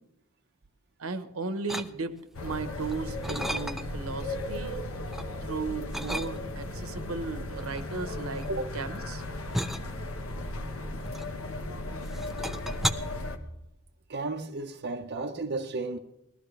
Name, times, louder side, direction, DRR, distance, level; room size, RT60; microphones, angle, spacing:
voice 1, 1.0-4.8 5.4-8.5 8.7-9.2, right 4 dB, 80° right, 1.0 m, -36 dB
sound 1, 1.7-2.4 2.8-4.1 4.5-5.3 5.9-6.7 7.6-11.7 12.0-12.9, equal, ahead, 0.5 m, -34 dB
sound 2, 2.3-13.4, left 1 dB, 75° left, 1.3 m, -36 dB
voice 2, 14.1-16.0, right 3 dB, 50° right, 0.7 m, -33 dB
19.5 x 14.0 x 3.3 m
head